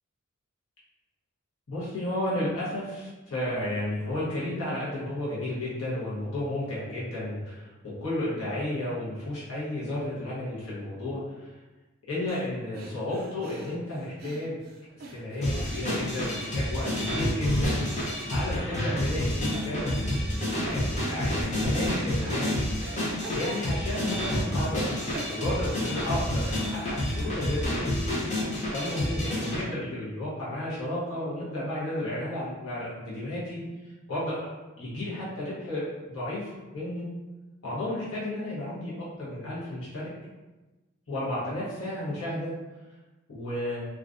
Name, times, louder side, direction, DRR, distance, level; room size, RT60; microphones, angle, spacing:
voice 1, 1.7-11.5 12.1-14.6 15.1-17.8 18.3-22.7 23.0-28.2 28.7-33.6 34.1-34.5 34.8-37.1 37.6-40.1 41.1-42.5 43.3-43.9, left 1 dB, 90° left, -9 dB, 0.8 m, -33 dB
sound 1, 12.3-12.5 12.7-17.9 18.2-18.4 18.7-19.3 19.5-20.4 20.7-21.4 21.9-23.0 23.2-24.8 25.1-27.3, right 2 dB, 45° right, 0.4 m, -46 dB
sound 2, 15.4-29.6, left 1 dB, 35° left, 0.6 m, -29 dB
2.4 x 2.2 x 2.4 m, 1.2 s
head